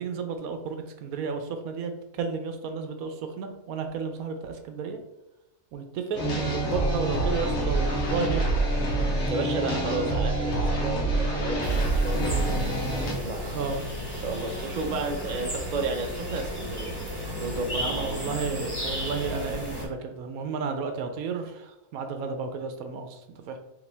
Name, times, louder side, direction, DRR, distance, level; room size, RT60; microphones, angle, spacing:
voice 1, 0.0-1.9 2.2-5.0 5.7-8.7 13.5-13.8 17.8-23.2 23.5-23.6, right 5 dB, 75° right, 6 dB, 1.1 m, -32 dB
sound 1, 6.1-13.1, right 2 dB, 55° left, 1.4 m, -26 dB
voice 2, 9.3-12.6 13.0-16.9 17.4-18.2, right 3 dB, 55° right, 3 dB, 0.5 m, -33 dB
sound 2, 11.6-19.9, equal, 20° right, 1.2 m, -34 dB
5.0 x 2.9 x 3.3 m, 0.94 s
omnidirectional pair, 1.6 m